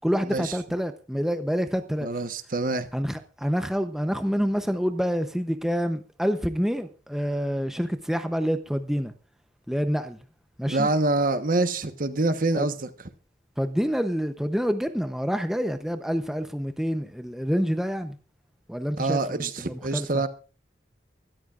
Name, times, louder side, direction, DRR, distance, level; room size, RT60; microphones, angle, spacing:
voice 1, 0.0-2.1 2.9-9.1 9.7-10.2 10.6-10.9 12.5-12.7 13.6-18.2 18.7-20.2, equal, ahead, 0.8 m, -27 dB
voice 2, 2.0-2.9 10.7-12.9 19.0-20.3, right 2 dB, 50° right, 1.2 m, -25 dB
23.5 x 13.5 x 2.5 m
head